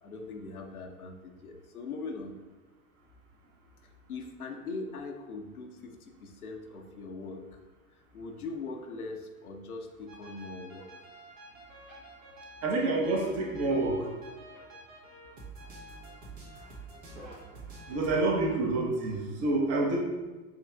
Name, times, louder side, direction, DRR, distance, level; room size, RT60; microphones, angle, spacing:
voice 1, 0.0-2.4 4.1-7.6 8.1-10.9 16.7-16.8, left 3 dB, 70° left, 4 dB, 0.7 m, -41 dB
sound 1, 10.1-18.1, right 2 dB, 60° right, 1.4 m, -48 dB
voice 2, 12.6-14.1 17.9-20.0, right 2 dB, 30° right, -1 dB, 0.9 m, -28 dB
6.4 x 3.1 x 2.3 m, 1.2 s
figure-of-eight pair, 85°, 45 cm